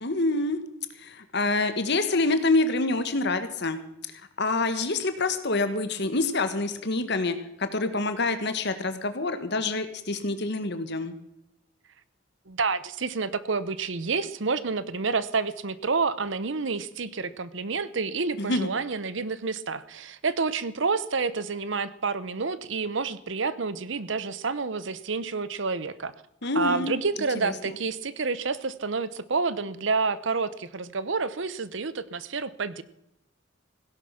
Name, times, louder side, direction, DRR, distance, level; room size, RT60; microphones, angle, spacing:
voice 1, 0.0-0.6 1.0-3.8 4.1-11.1 18.4-18.7 26.4-26.9 27.4-27.5, left 2 dB, 60° left, 10 dB, 1.5 m, -26 dB
voice 2, 12.5-26.1 26.5-32.8, right 4 dB, 65° right, 16 dB, 0.9 m, -29 dB
16.5 x 11.0 x 5.8 m, 0.81 s
head